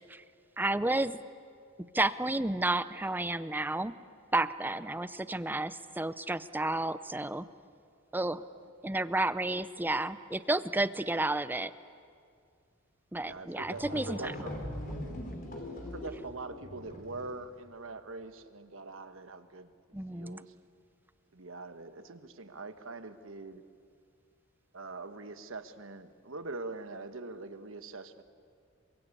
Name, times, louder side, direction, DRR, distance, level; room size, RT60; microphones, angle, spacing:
voice 1, 0.6-1.2 1.9-4.0 4.3-7.4 8.1-8.4 8.8-11.7 13.1-14.3 19.9-20.4, right 2 dB, 10° right, 14 dB, 0.6 m, -31 dB
voice 2, 13.2-14.7 15.9-19.7 20.1-20.5 21.3-23.6 24.7-28.2, right 3 dB, 70° right, 10 dB, 1.3 m, -43 dB
sound 1, 13.3-13.4 13.6-17.4, left 1 dB, 40° left, 3.4 m, -41 dB
27.5 x 24.0 x 8.5 m, 2.3 s
head